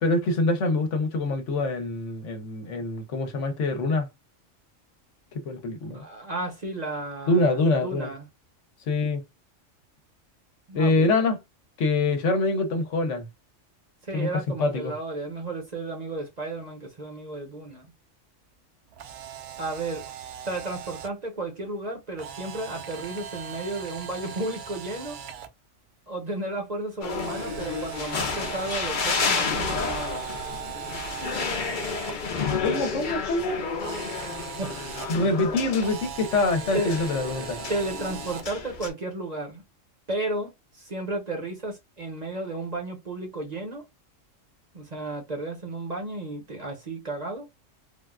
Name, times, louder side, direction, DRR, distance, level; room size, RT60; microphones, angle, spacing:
voice 1, 0.0-4.1 5.3-6.0 7.3-8.1 8.9-9.2 10.7-11.4 11.8-13.3 14.1-14.3 14.6-14.9 32.6-33.6 35.1-37.6, left 2 dB, 70° left, 1.1 m, -25 dB
voice 2, 5.9-8.3 10.7-11.2 14.0-17.9 19.6-20.1 20.4-25.2 26.1-30.2 34.1-35.2 36.7-36.9 37.7-39.6 40.1-43.8 44.7-47.5, right 2 dB, 35° right, 1.0 m, -33 dB
Camera, 18.9-21.1 22.2-25.5 27.2-32.1 33.8-35.1 35.8-38.5, right 8 dB, 65° right, 0.8 m, -39 dB
sound 1, 27.0-38.9, left 5 dB, 45° left, 0.8 m, -31 dB
3.5 x 2.3 x 2.3 m
omnidirectional pair, 1.3 m